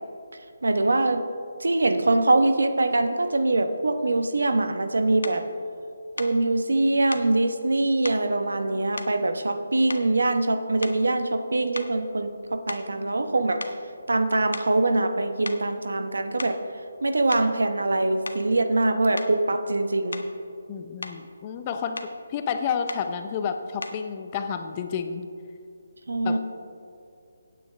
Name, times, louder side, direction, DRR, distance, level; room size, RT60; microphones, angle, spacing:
voice 1, 0.6-1.2 1.6-5.5 6.2-13.6 14.1-16.6 17.0-20.2 26.1-26.4, right 2 dB, 85° right, 8 dB, 1.0 m, -23 dB
sound 1, 5.2-5.4 6.2-6.4 7.1-7.3 8.0-8.3 9.0-9.6 9.9-10.3 10.8-11.2 11.7-13.3 13.6-13.8 14.5-14.8 15.5-15.7 16.2-16.7 17.3-17.5 18.3-18.5 19.2-19.4 20.1-20.4 20.8-21.2 22.0-22.2 22.9-23.1 23.8-24.1, left 2 dB, 90° left, 0.9 m, -37 dB
voice 2, 20.7-25.3 26.2-26.4, left 7 dB, 25° left, 7 dB, 0.5 m, -30 dB
16.0 x 9.2 x 3.3 m, 2.5 s
hypercardioid pair, 165°, 0 cm